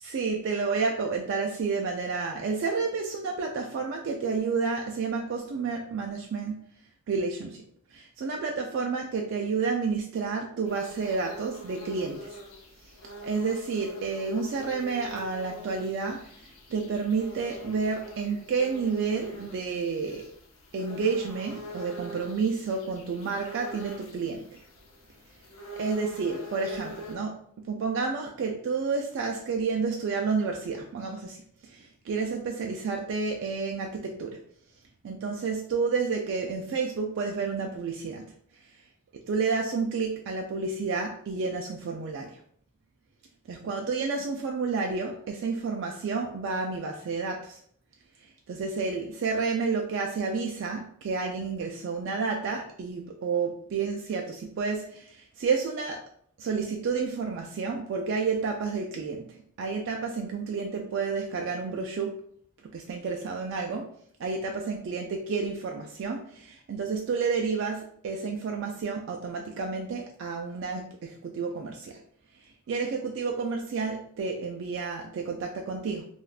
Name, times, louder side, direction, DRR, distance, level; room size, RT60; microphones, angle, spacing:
voice 1, 0.0-6.7 7.1-7.6 7.9-12.4 12.8-12.9 13.2-20.2 20.7-24.6 25.8-34.4 35.0-38.3 38.6-38.8 39.3-42.4 43.5-47.6 48.2-56.0 56.4-62.2 62.7-63.9 64.2-72.0 72.3-76.1, right 4 dB, 55° right, 2 dB, 0.3 m, -30 dB
sound 1, 10.6-27.2, equal, 65° left, 0.6 m, -44 dB
3.4 x 2.3 x 2.3 m, 0.62 s
head